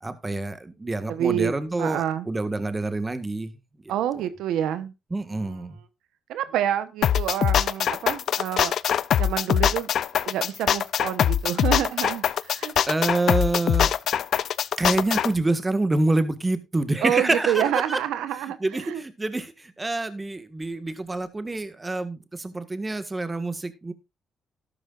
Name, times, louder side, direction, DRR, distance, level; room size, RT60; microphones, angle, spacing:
voice 1, 0.0-3.5 5.1-5.8 12.9-13.9 14.8-18.0 18.6-23.9, right 2 dB, 20° right, 1.7 m, -27 dB
voice 2, 1.1-1.5 1.8-2.3 3.9-4.9 5.5-5.6 6.3-8.7 9.2-9.9 10.2-12.7 17.0-19.0, right 10 dB, 85° right, 1.1 m, -27 dB
sound 1, 7.0-15.3, left 9 dB, 65° left, 0.5 m, -22 dB
13.0 x 12.0 x 2.5 m
cardioid pair, 90°, 0 cm